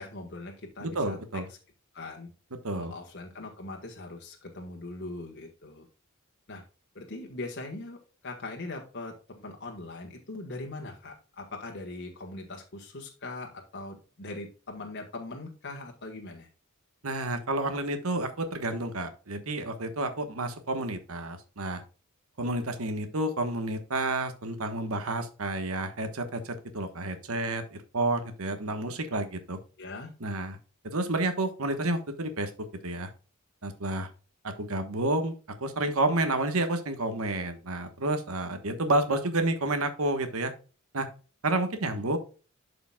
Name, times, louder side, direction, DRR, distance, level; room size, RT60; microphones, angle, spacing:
voice 1, 0.0-1.4 1.9-2.3 2.7-5.9 6.5-6.6 6.9-16.5 29.8-30.1, left 2 dB, 55° left, 1 dB, 1.5 m, -41 dB
voice 2, 0.8-1.4 2.6-2.9 17.0-21.8 22.4-29.6 30.2-30.6 30.8-32.5 32.8-33.1 33.6-34.1 34.4-40.5 40.9-41.1 41.4-42.2, right 2 dB, 75° right, 8 dB, 1.2 m, -30 dB
11.5 x 5.1 x 2.3 m, 0.35 s
head